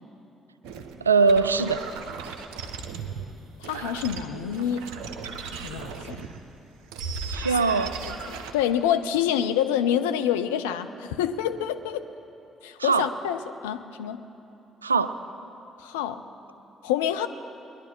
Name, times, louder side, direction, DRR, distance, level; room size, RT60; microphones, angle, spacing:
sound 1, 0.6-6.4 6.8-8.5, right 5 dB, 70° right, 0.7 m, -36 dB
voice 1, 1.0-1.8 7.3-7.9 12.8-13.0 14.8-15.1, right 4 dB, 90° right, 12 dB, 0.3 m, -21 dB
voice 2, 3.6-4.9 5.6-6.3 8.0-12.1 12.6-14.2 15.8-16.2 16.8-17.3, left 10 dB, 75° left, 9 dB, 0.5 m, -27 dB
20.5 x 11.0 x 4.4 m, 2.9 s
figure-of-eight pair, 45°, 0 cm